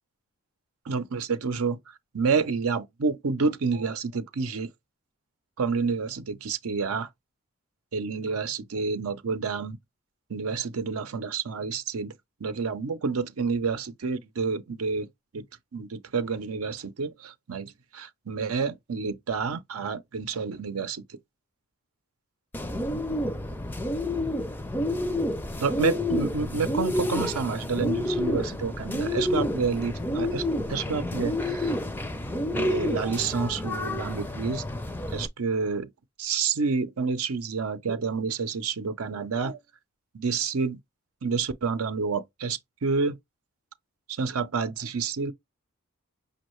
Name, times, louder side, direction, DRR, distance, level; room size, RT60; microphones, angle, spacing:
voice 1, 0.9-1.8 2.1-4.7 5.6-7.1 7.9-9.8 10.3-12.1 12.4-15.1 15.3-15.4 15.7-21.0 25.6-30.4 30.7-31.7 32.6-34.6 35.1-35.9 36.2-39.6 40.1-40.8 41.2-43.2 44.1-45.3, right 5 dB, 80° right, 0.6 m, -29 dB
Bird, 22.5-35.3, left 1 dB, 10° left, 0.4 m, -29 dB
5.4 x 2.3 x 3.0 m
head